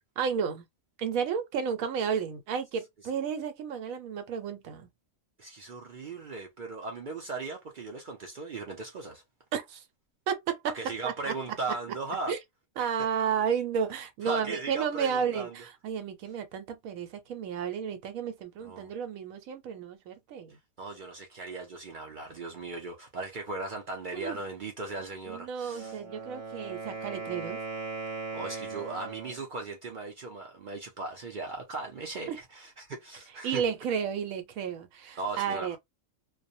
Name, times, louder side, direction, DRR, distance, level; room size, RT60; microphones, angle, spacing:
voice 1, 0.2-0.7 1.0-4.9 9.5-9.8 10.3-10.7 11.0-11.3 12.3-12.4 12.8-20.6 24.1-24.4 25.3-27.6 32.3-32.4 33.4-35.8, right 7 dB, 85° right, 1.0 m, -32 dB
voice 2, 5.4-9.2 10.7-12.3 12.8-12.9 14.2-15.6 18.6-18.9 20.8-26.0 28.3-33.6 35.2-35.8, right 3 dB, 60° right, 0.5 m, -38 dB
Wind instrument woodwind instrument, 25.6-29.4, right 4 dB, 25° right, 1.0 m, -38 dB
2.3 x 2.0 x 2.5 m
omnidirectional pair, 1.4 m